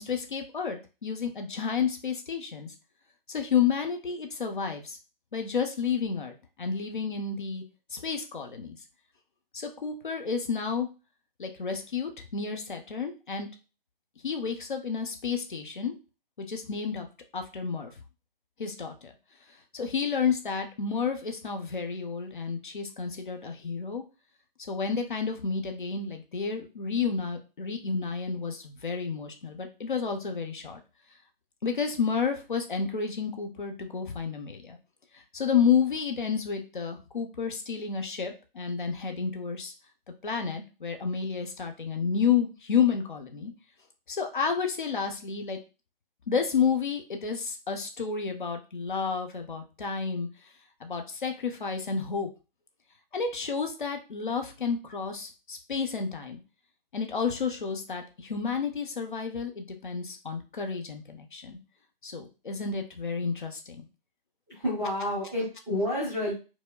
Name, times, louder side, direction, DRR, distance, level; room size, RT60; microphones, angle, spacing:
voice 1, 0.0-2.7 3.3-5.0 5.3-7.6 7.9-8.8 9.5-10.9 11.4-13.5 14.2-15.9 16.4-17.1 17.3-17.9 18.6-19.1 19.7-24.0 24.7-30.8 31.6-34.8 35.1-39.7 40.2-43.5 44.1-45.6 46.3-50.3 50.8-52.3 53.1-56.4 56.9-61.6 62.0-63.8, left 6 dB, 55° left, 4 dB, 0.7 m, -30 dB
voice 2, 64.5-66.3, left 1 dB, 5° right, -10 dB, 0.6 m, -29 dB
4.7 x 2.1 x 2.3 m, 0.31 s
figure-of-eight pair, 145°, 29 cm